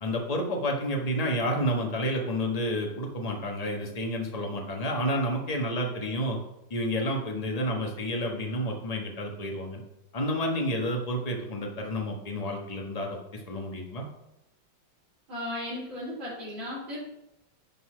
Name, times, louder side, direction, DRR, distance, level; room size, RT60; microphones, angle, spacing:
voice 1, 0.0-6.4 6.7-9.8 10.1-14.0, equal, 25° left, 1 dB, 1.2 m, -30 dB
voice 2, 15.3-17.0, left 1 dB, 80° right, -11 dB, 4.0 m, -35 dB
11.0 x 4.2 x 4.9 m, 0.85 s
omnidirectional pair, 2.2 m